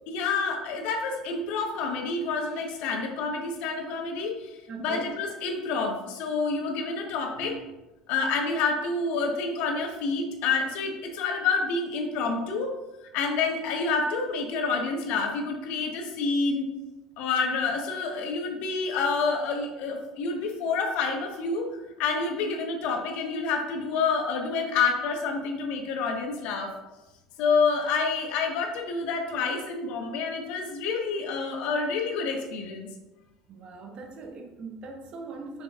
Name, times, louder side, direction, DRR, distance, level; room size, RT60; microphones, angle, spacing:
voice 1, 0.1-7.6 8.1-16.7 17.2-26.7 27.4-32.9, left 4 dB, 65° left, 3 dB, 1.1 m, -28 dB
voice 2, 4.7-5.1 7.4-7.7 33.5-35.6, right 4 dB, 50° right, 4 dB, 1.0 m, -40 dB
6.8 x 6.0 x 2.4 m, 1.0 s
hypercardioid pair, 70°, 2 cm